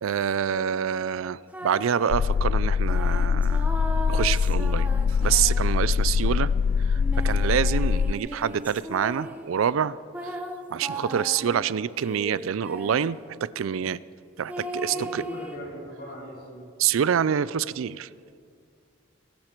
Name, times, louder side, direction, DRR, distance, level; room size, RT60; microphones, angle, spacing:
voice 1, 0.0-3.7 4.1-6.5 6.9-10.0 10.7-14.0 14.4-15.2 16.8-18.1, right 8 dB, 85° right, 19 dB, 0.4 m, -26 dB
sound 1, 1.5-2.1 2.9-6.1 7.0-9.5 10.1-13.2 14.5-15.6, right 1 dB, 5° right, 0.8 m, -37 dB
sound 2, 2.1-8.1, left 6 dB, 85° left, 0.3 m, -23 dB
voice 2, 14.9-16.7, left 1 dB, 45° left, -4 dB, 4.6 m, -39 dB
21.0 x 14.0 x 4.5 m, 2.3 s
head